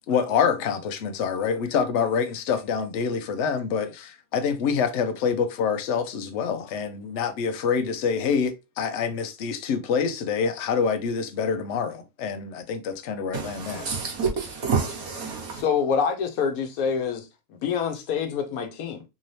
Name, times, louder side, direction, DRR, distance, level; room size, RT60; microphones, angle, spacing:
voice 1, 0.0-13.8, left 6 dB, 60° left, 0.9 m, -26 dB
voice 2, 13.3-15.6, right 5 dB, 90° right, 1.6 m, -28 dB
voice 3, 15.6-19.0, left 6 dB, 85° left, 1.2 m, -26 dB
3.7 x 2.7 x 3.1 m
omnidirectional pair, 1.5 m